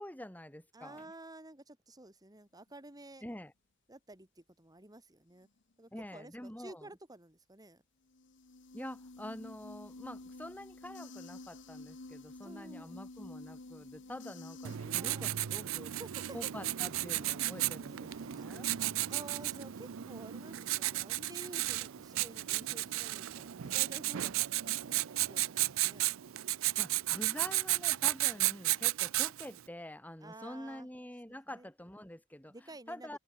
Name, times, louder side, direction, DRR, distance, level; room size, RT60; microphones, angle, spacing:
voice 1, 0.0-1.0 3.2-3.5 5.9-6.9 8.7-15.9 16.3-18.7 26.8-32.5 32.9-33.2, left 1 dB, 10° left, 2.1 m, -46 dB
voice 2, 0.7-3.2 3.9-5.5 5.8-7.8 12.4-13.0 14.9-15.3 16.0-16.4 17.9-18.5 19.1-26.0 30.2-30.9 31.3-31.7 32.5-33.2, right 2 dB, 20° right, 2.3 m, -52 dB
sound 1, 8.1-14.8, left 2 dB, 60° left, 1.3 m, -50 dB
Writing, 14.6-29.6, right 16 dB, 85° right, 0.5 m, -34 dB
sound 2, 18.7-24.9, equal, 50° right, 4.4 m, -61 dB
open air
head